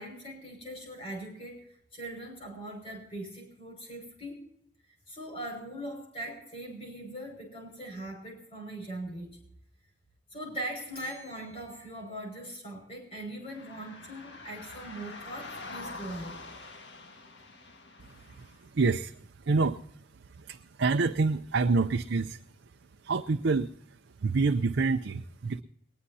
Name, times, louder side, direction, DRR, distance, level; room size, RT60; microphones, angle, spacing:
voice 1, 0.0-1.7 1.9-4.4 5.1-9.4 10.3-16.4, right 1 dB, 35° left, 1 dB, 5.7 m, -40 dB
Bell, 10.9-13.1, equal, 60° left, 6.3 m, -55 dB
sound 1, 13.4-18.6, left 3 dB, 75° left, 1.7 m, -45 dB
voice 2, 18.0-22.4 23.0-25.6, right 4 dB, 85° right, 7 dB, 0.6 m, -28 dB
20.5 x 20.0 x 2.8 m, 0.73 s
head